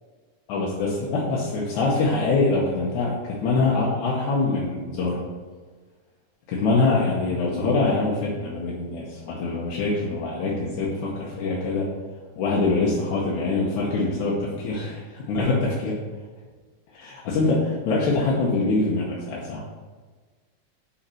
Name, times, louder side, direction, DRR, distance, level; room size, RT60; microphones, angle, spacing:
voice 1, 0.5-5.2 6.5-11.9 12.4-16.0 16.9-19.7, left 3 dB, 75° left, -4 dB, 2.3 m, -24 dB
6.4 x 4.2 x 6.1 m, 1.4 s
omnidirectional pair, 3.5 m